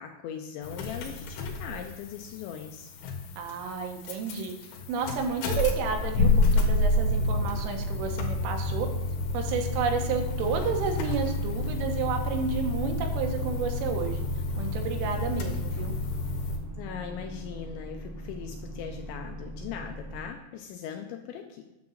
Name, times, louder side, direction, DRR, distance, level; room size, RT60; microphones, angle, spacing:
voice 1, 0.0-2.9 16.8-21.7, left 8 dB, 90° left, 4 dB, 2.7 m, -40 dB
sound 1, 0.6-16.6, left 2 dB, 70° left, 3.4 m, -29 dB
voice 2, 3.4-4.5 4.9-8.9 9.3-14.2 14.6-16.0, right 5 dB, 80° right, 4 dB, 3.6 m, -31 dB
sound 2, 10.1-20.2, equal, 55° right, 2.8 m, -40 dB
9.6 x 3.8 x 7.3 m, 1.0 s
omnidirectional pair, 5.8 m